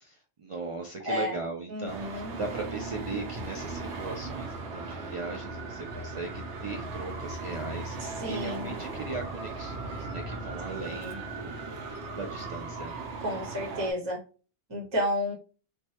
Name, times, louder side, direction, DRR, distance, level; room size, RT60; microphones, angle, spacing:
voice 1, 0.0-11.6 11.9-12.9, right 3 dB, 50° right, 0 dB, 0.3 m, -38 dB
voice 2, 1.0-1.4 1.7-2.3 8.0-8.7 10.8-11.2 13.2-14.2 14.7-15.3, left 1 dB, 30° right, -1 dB, 0.8 m, -32 dB
Traffic noise roadway noise, 1.9-13.9, right 3 dB, 85° right, 0.9 m, -38 dB
3.1 x 2.2 x 2.7 m, 0.36 s
omnidirectional pair, 1.1 m